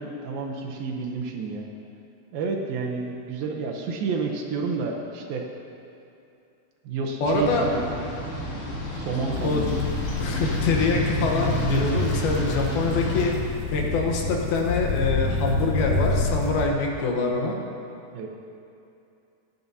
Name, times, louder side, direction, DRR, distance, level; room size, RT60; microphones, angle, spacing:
voice 1, 0.0-1.7 2.3-5.5 6.9-7.8 8.4-8.5 8.7-9.7 18.1-18.3, right 4 dB, 75° right, 1 dB, 2.4 m, -30 dB
voice 2, 7.2-7.7 9.4-9.6 10.2-13.3 13.7-17.6, left 3 dB, 75° left, 0 dB, 2.8 m, -25 dB
sound 1, 7.2-13.3, equal, 50° left, 3.5 m, -31 dB
sound 2, 9.3-16.7, left 3 dB, 90° left, 1.6 m, -28 dB
17.5 x 12.0 x 2.8 m, 2.7 s
omnidirectional pair, 4.6 m